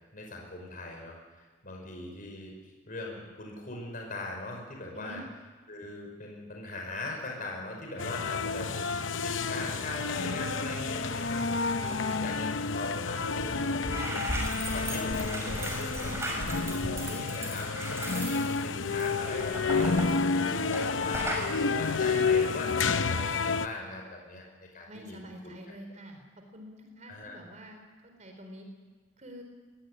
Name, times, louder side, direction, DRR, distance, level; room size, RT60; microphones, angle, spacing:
voice 1, 0.1-2.5 2.9-5.2 5.7-12.5 12.7-14.4 14.7-25.5 27.1-27.4, left 2 dB, 45° left, 0 dB, 5.4 m, -40 dB
sound 1, 8.0-23.7, left 4 dB, 70° left, 0.8 m, -30 dB
voice 2, 11.7-12.2 16.0-16.3 24.9-26.2 26.5-28.7 29.2-29.4, equal, 35° right, 4 dB, 4.2 m, -47 dB
sound 2, 13.4-13.5 13.7-20.9 21.1-21.5, right 1 dB, 15° right, 6.3 m, -36 dB
22.0 x 18.5 x 9.9 m, 1.4 s
head